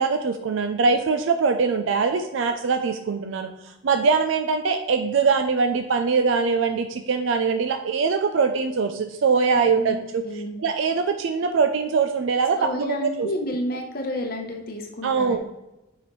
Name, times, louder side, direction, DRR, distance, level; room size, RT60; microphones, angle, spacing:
voice 1, 0.0-13.3 15.0-15.4, right 5 dB, 75° right, 7 dB, 0.4 m, -22 dB
voice 2, 9.5-10.6 12.6-15.4, left 1 dB, 45° left, 2 dB, 0.8 m, -31 dB
7.3 x 5.0 x 3.1 m, 0.98 s
head